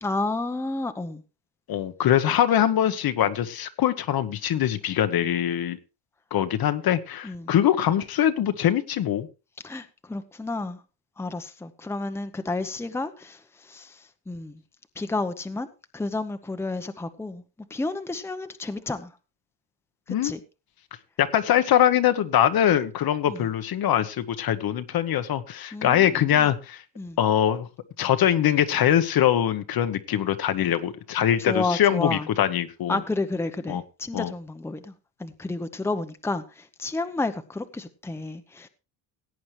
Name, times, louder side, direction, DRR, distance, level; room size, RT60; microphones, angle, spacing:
voice 1, 0.0-1.2 7.2-7.5 9.6-10.8 11.2-14.6 15.0-15.7 15.9-17.4 17.7-19.1 20.2-20.4 23.3-23.5 25.7-26.5 27.0-27.2 31.5-32.3 32.9-34.9 35.2-38.7, left 2 dB, 5° left, 0.8 m, -31 dB
voice 2, 1.7-5.8 6.3-9.3 20.1-20.3 21.2-26.8 27.2-27.7 28.0-33.0 33.7-33.8 34.1-34.3, left 10 dB, 55° left, 1.1 m, -23 dB
17.0 x 8.7 x 3.2 m
cardioid pair, 115°, 45 cm